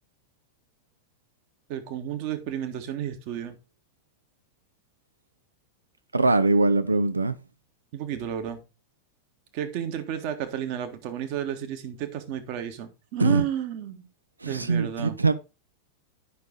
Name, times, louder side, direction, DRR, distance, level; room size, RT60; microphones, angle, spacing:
voice 1, 1.7-3.6 7.9-8.6 9.5-14.1 14.4-15.1, right 10 dB, 45° right, 1.5 m, -32 dB
voice 2, 6.1-7.4 13.2-13.4 14.4-15.3, right 3 dB, 80° right, 0.7 m, -22 dB
9.5 x 6.0 x 3.9 m
figure-of-eight pair, 90°, 0 cm